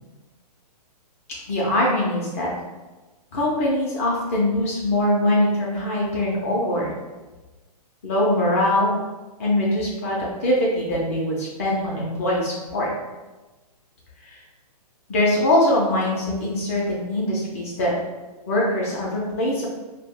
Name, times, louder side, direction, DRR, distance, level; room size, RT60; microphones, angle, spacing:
voice 1, 1.5-2.5 3.3-6.9 8.0-8.9 9.4-12.9 14.2-14.4 15.1-17.9 18.5-19.7, left 1 dB, 25° left, -4 dB, 0.3 m, -22 dB
2.3 x 2.0 x 3.4 m, 1.2 s
hypercardioid pair, 160°, 20 cm